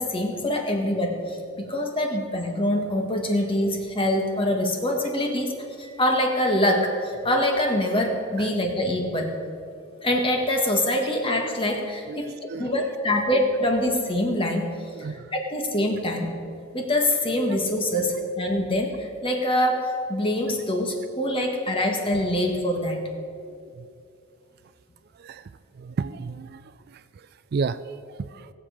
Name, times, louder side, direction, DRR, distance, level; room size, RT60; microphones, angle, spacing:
voice 1, 0.0-9.4 10.0-14.7 15.0-16.3 16.7-23.0, left 1 dB, 25° left, 2 dB, 1.5 m, -25 dB
voice 2, 12.1-13.2 14.9-15.3 23.8-23.9 25.1-28.5, right 5 dB, 50° right, 13 dB, 0.3 m, -34 dB
19.0 x 7.3 x 5.0 m, 2.4 s
head